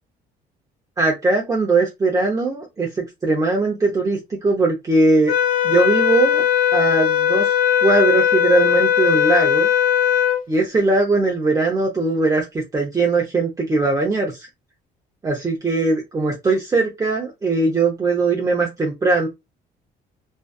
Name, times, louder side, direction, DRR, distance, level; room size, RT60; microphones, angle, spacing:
voice 1, 1.0-5.3 5.6-6.4 6.7-7.5 7.8-9.7 10.5-12.5 12.7-14.5 15.2-19.3, right 3 dB, 20° right, 0.6 m, -20 dB
sound 1, 5.3-10.4, left 9 dB, 60° left, 0.4 m, -18 dB
2.6 x 2.3 x 2.2 m
cardioid pair, 110°, 17 cm